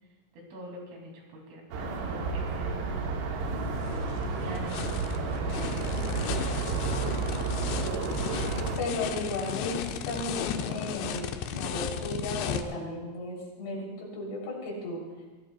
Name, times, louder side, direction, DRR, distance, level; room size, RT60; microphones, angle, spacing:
voice 1, 0.3-3.5 3.8-6.2 8.9-9.1, right 1 dB, 70° right, -1 dB, 5.3 m, -44 dB
sound 1, 1.7-8.8, right 4 dB, 90° right, 4.5 m, -31 dB
sound 2, 3.5-12.6, left 9 dB, 85° left, 2.5 m, -35 dB
voice 2, 8.8-15.0, left 1 dB, 65° left, -3 dB, 5.8 m, -35 dB
24.5 x 16.5 x 2.3 m, 1.3 s
omnidirectional pair, 6.0 m